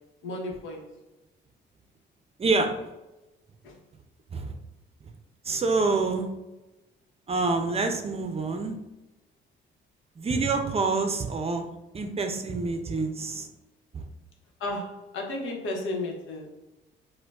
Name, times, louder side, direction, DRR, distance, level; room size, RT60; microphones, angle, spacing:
voice 1, 0.2-0.9 3.6-3.7 14.6-16.5, left 2 dB, 80° left, 0 dB, 0.9 m, -33 dB
voice 2, 2.4-2.7 4.3-4.5 5.4-6.3 7.3-8.8 10.2-11.7 11.9-13.5 13.9-14.0, right 3 dB, 30° right, 5 dB, 0.5 m, -27 dB
4.9 x 2.2 x 2.4 m, 1.0 s
cardioid pair, 90°, 20 cm